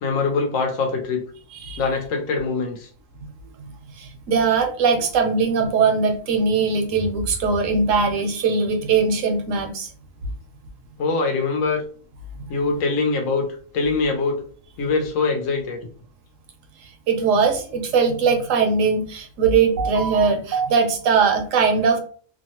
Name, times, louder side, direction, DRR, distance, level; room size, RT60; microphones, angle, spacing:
voice 1, 0.0-1.2 1.8-2.9 11.0-11.8 12.5-13.5 13.7-14.4 14.8-15.8, left 4 dB, 75° left, 3 dB, 1.1 m, -23 dB
voice 2, 4.3-9.9 17.1-22.0, right 5 dB, 70° right, 4 dB, 0.9 m, -20 dB
2.9 x 2.1 x 2.8 m, 0.43 s
omnidirectional pair, 1.4 m